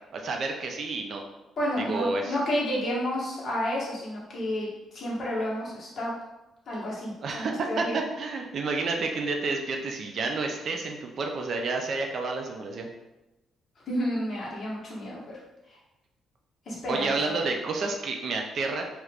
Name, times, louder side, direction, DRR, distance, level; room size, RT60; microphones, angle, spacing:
voice 1, 0.1-1.2 1.8-2.4 7.2-12.9 16.9-18.8, right 3 dB, 50° right, 3 dB, 0.4 m, -30 dB
voice 2, 1.6-4.7 4.9-6.1 6.7-7.9 13.9-15.4 16.7-17.4, equal, 40° left, -5 dB, 1.0 m, -31 dB
2.9 x 2.4 x 3.3 m, 0.98 s
cardioid pair, 140°, 0 cm